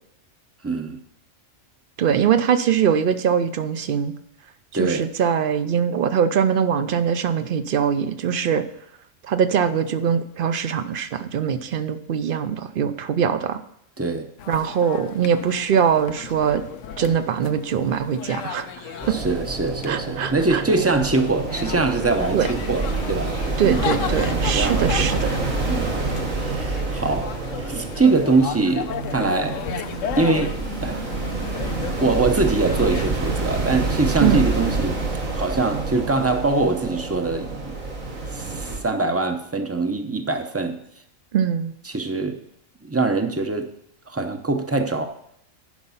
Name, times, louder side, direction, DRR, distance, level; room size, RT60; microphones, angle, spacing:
voice 1, 0.6-1.0 4.7-5.0 14.0-14.3 19.1-23.3 23.6-23.9 24.5-25.3 25.7-26.0 26.3-27.3 27.6-29.6 30.2-31.1 32.0-35.0 35.3-37.8 38.3-40.8 41.8-42.4 42.8-43.7 44.1-45.0, right 3 dB, 15° right, 6 dB, 0.5 m, -23 dB
voice 2, 2.0-4.1 4.7-8.7 9.2-13.6 14.5-16.6 17.0-19.1 19.9-20.6 22.3-22.5 23.6-25.3 34.2-34.5 41.3-41.7, right 8 dB, 55° right, 11 dB, 0.6 m, -22 dB
sound 1, 14.4-33.1, left 8 dB, 80° left, 1.0 m, -35 dB
sound 2, 19.0-38.8, right 3 dB, 85° right, 2.1 m, -27 dB
10.5 x 5.3 x 5.6 m, 0.76 s
omnidirectional pair, 1.3 m